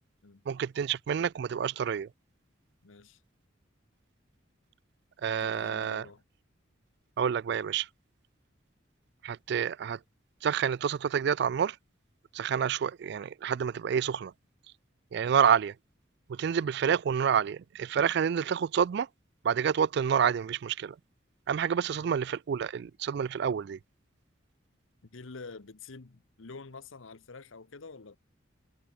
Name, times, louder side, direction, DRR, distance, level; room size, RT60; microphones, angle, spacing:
voice 1, 0.5-2.1 5.2-6.0 7.2-7.9 9.2-10.0 10.4-11.8 12.3-14.3 15.1-15.7 16.3-19.1 19.4-21.0 21.5-23.8, right 7 dB, 55° right, 0.3 m, -28 dB
voice 2, 2.8-3.2 5.4-6.2 21.9-22.1 25.0-28.2, left 4 dB, 90° left, 1.0 m, -47 dB
head